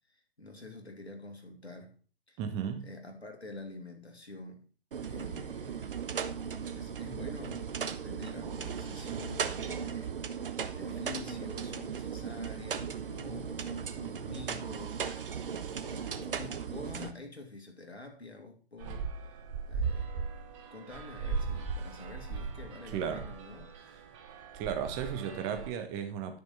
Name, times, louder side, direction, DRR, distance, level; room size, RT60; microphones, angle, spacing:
voice 1, 0.1-2.0 2.3-2.4 2.8-4.6 5.1-5.9 6.5-15.0 15.8-20.3 20.7-23.7, left 3 dB, 90° left, 2.9 m, -47 dB
voice 2, 2.4-2.9 22.9-23.3 24.5-26.4, right 8 dB, 10° right, 0.5 m, -35 dB
sound 1, 4.9-17.1, right 7 dB, 60° right, 1.1 m, -37 dB
sound 2, 18.8-25.7, right 5 dB, 30° right, 1.4 m, -38 dB
11.0 x 6.5 x 5.6 m
figure-of-eight pair, 130°, 31 cm